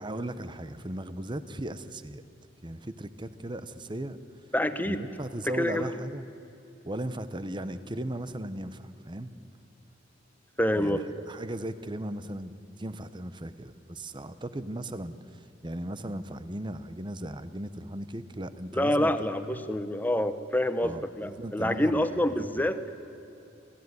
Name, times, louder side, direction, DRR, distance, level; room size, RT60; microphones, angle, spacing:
voice 1, 0.0-2.2 2.6-4.2 4.8-6.2 6.8-9.3 10.7-19.7 20.8-22.1, right 1 dB, 25° right, 12 dB, 0.9 m, -37 dB
voice 2, 4.5-5.0 5.6-5.9 10.6-11.0 18.7-22.9, left 1 dB, 10° left, 10 dB, 1.0 m, -27 dB
26.5 x 16.5 x 9.6 m, 2.9 s
head